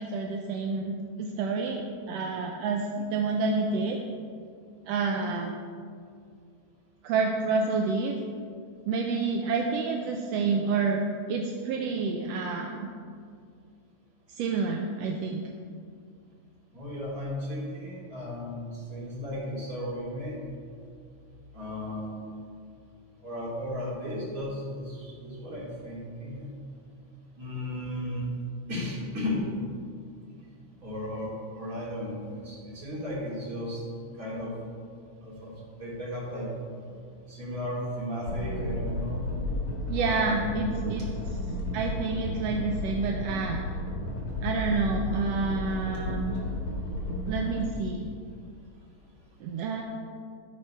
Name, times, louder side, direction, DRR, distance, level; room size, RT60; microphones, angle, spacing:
voice 1, 0.0-4.0 4.9-5.6 7.0-8.2 8.8-11.0 11.3-12.9 14.3-15.4 39.9-41.0 41.7-43.6 44.4-46.4 47.3-48.1 49.4-49.8, right 4 dB, 75° right, 1 dB, 1.5 m, -29 dB
voice 2, 16.7-20.3 21.5-22.4 23.2-26.5 27.4-28.3 28.7-29.5 30.8-33.8 34.1-34.5 35.2-36.9 37.3-39.3 40.0-40.9, left 1 dB, 30° right, -7 dB, 3.0 m, -35 dB
sound 1, 38.3-47.6, left 1 dB, 85° left, 3.2 m, -33 dB
13.5 x 4.6 x 5.6 m, 2.2 s
omnidirectional pair, 3.3 m